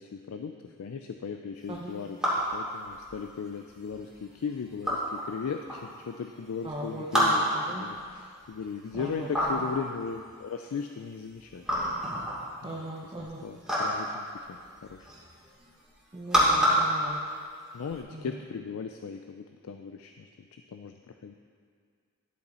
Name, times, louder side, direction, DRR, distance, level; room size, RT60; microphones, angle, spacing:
voice 1, 0.0-2.2 2.5-11.7 12.6-12.8 13.2-15.1 16.7-16.8 17.7-21.3, left 6 dB, 70° left, 5 dB, 0.4 m, -37 dB
sound 1, 1.6-18.0, equal, 5° right, 2.2 m, -30 dB
voice 2, 6.6-7.8 8.9-9.6 12.6-13.5 16.1-17.2 18.1-18.3, right 1 dB, 25° right, -3 dB, 0.7 m, -39 dB
10.5 x 6.8 x 4.3 m, 2.1 s
head